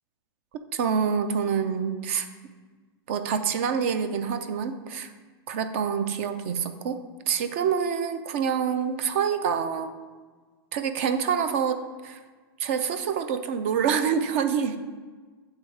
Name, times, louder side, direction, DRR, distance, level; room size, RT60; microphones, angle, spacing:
voice 1, 0.7-2.3 3.1-5.1 5.5-7.0 7.3-9.9 10.7-11.8 12.0-12.2 12.6-14.8, right 7 dB, 30° right, 10 dB, 0.4 m, -26 dB
8.1 x 3.5 x 4.8 m, 1.4 s
supercardioid pair, 175°, 13 cm